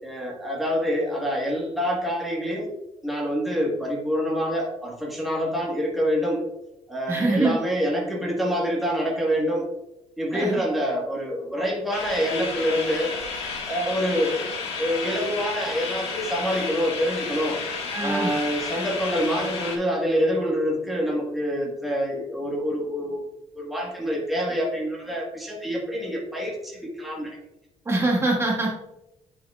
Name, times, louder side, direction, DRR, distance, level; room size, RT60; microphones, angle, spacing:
voice 1, 0.0-2.7 3.0-6.4 6.9-9.7 10.2-13.1 13.6-14.4 14.8-17.6 18.0-23.3 23.5-27.4, equal, ahead, -3 dB, 1.3 m, -26 dB
voice 2, 7.1-7.6 10.3-10.6 17.9-18.3 27.8-28.7, right 2 dB, 20° right, -1 dB, 1.3 m, -23 dB
sound 1, 11.9-19.8, left 4 dB, 60° left, 1.5 m, -32 dB
10.0 x 4.6 x 2.3 m, 0.93 s
cardioid pair, 135°, 12 cm